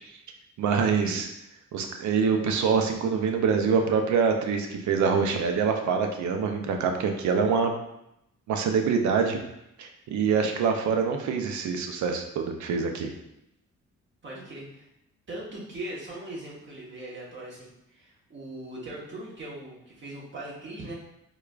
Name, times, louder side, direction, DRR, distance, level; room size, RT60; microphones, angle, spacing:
voice 1, 0.6-1.3 1.7-7.7 8.5-9.4 9.8-13.1, right 5 dB, 70° right, 4 dB, 0.6 m, -25 dB
voice 2, 14.2-14.9 15.3-20.9, right 1 dB, 40° right, -5 dB, 1.3 m, -40 dB
4.6 x 2.3 x 2.4 m, 0.83 s
cardioid pair, 90°, 30 cm